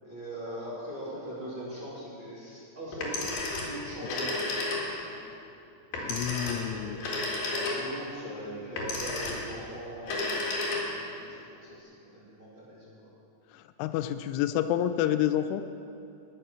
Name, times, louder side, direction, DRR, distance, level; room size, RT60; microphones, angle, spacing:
voice 1, 0.0-3.3 3.6-4.5 5.1-5.2 6.6-11.0 11.2-11.4 11.7-12.9, equal, 30° right, -10 dB, 2.8 m, -40 dB
Telephone, 2.9-5.1 5.9-8.1 8.8-9.6 10.0-11.1, left 2 dB, 55° left, 3.2 m, -32 dB
voice 2, 6.1-7.0 13.5-15.6, left 11 dB, 90° left, 10 dB, 2.7 m, -29 dB
19.5 x 6.8 x 6.4 m, 2.6 s
omnidirectional pair, 6.0 m